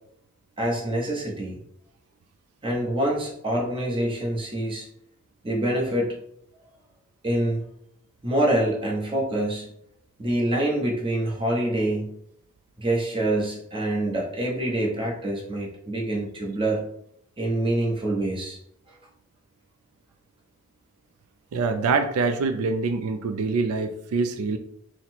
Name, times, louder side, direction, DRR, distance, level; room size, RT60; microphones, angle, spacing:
voice 1, 0.6-1.6 2.6-4.9 5.4-6.2 7.2-7.6 8.2-9.7 10.2-12.2 12.8-16.8 17.4-18.6 18.9-19.0, right 1 dB, 25° right, -2 dB, 0.9 m, -26 dB
voice 2, 21.5-24.6, right 4 dB, 90° right, 8 dB, 0.4 m, -25 dB
4.0 x 2.1 x 4.3 m, 0.71 s
head